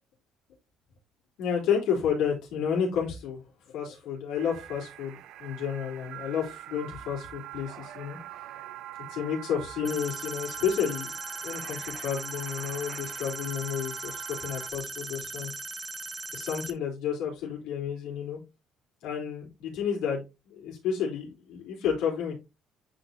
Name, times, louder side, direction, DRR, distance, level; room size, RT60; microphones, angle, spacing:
voice 1, 1.4-3.4 3.7-8.2 9.1-11.1 11.4-15.5 16.3-18.4 19.0-22.4, left 7 dB, 85° left, -3 dB, 4.0 m, -31 dB
sound 1, 4.3-14.7, right 13 dB, 70° right, 0.6 m, -43 dB
sound 2, 9.8-16.7, right 3 dB, 15° right, 0.7 m, -39 dB
10.5 x 4.2 x 2.9 m, 0.26 s
cardioid pair, 150°, 0 cm